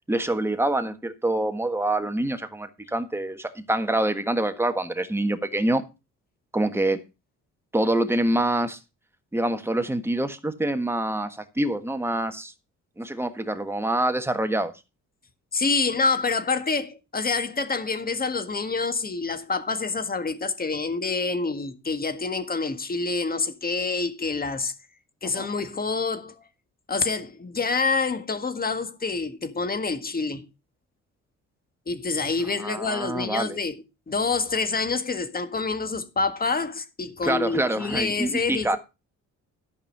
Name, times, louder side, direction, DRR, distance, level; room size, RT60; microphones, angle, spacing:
voice 1, 0.1-5.8 6.5-7.0 7.7-8.8 9.3-12.5 13.0-14.7 25.3-25.5 32.6-33.6 37.2-38.8, right 1 dB, 10° right, 1.5 m, -26 dB
voice 2, 15.5-24.7 25.2-26.4 26.9-30.4 31.9-38.8, left 4 dB, 30° left, 1.7 m, -27 dB
12.5 x 5.5 x 5.4 m
cardioid pair, 90°, 30 cm